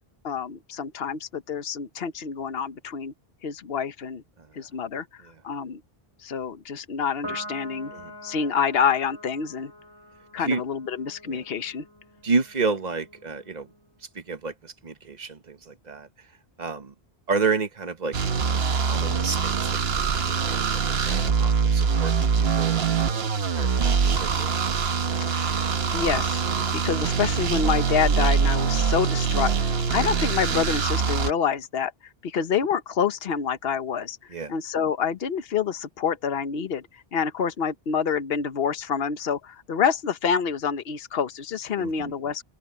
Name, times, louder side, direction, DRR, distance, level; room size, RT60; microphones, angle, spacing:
voice 1, 0.2-3.1 3.4-4.2 4.6-5.8 6.2-7.9 8.2-9.7 10.3-11.8 25.3-25.5 25.9-26.4 26.7-31.9 32.2-34.2 34.5-36.8 37.1-42.4, left 7 dB, 70° left, 1.2 m, -27 dB
Piano, 7.2-13.9, equal, 20° left, 4.5 m, -44 dB
voice 2, 12.2-13.7 14.1-16.1 16.6-16.9 17.3-18.2 18.8-19.8 20.2-23.2 23.5-24.5 29.9-30.0 34.3-34.5 41.8-42.1, right 4 dB, 45° right, 1.3 m, -30 dB
sound 1, 18.1-31.3, right 6 dB, 75° right, 1.3 m, -24 dB
open air
omnidirectional pair, 1.0 m